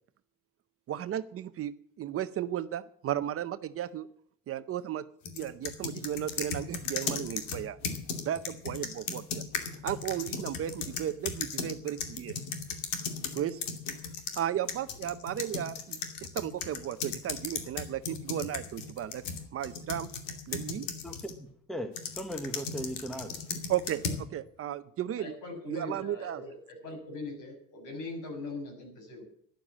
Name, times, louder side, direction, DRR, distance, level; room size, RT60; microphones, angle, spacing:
voice 1, 0.9-4.1 4.5-5.1 5.3-7.8 8.2-9.4 9.8-12.4 13.3-13.6 14.4-19.2 19.5-20.1 20.5-20.9 23.7-25.3 25.7-26.4, right 11 dB, 40° right, 13 dB, 0.7 m, -34 dB
sound 1, 5.3-14.4 14.7-21.4 22.0-24.2, left 6 dB, 85° left, 2.6 m, -36 dB
voice 2, 21.0-23.3, equal, ahead, 8 dB, 1.0 m, -38 dB
voice 3, 25.1-26.6 26.8-29.3, left 3 dB, 65° left, 2 dB, 6.9 m, -41 dB
12.5 x 11.5 x 7.4 m, 0.65 s
cardioid pair, 155°, 33 cm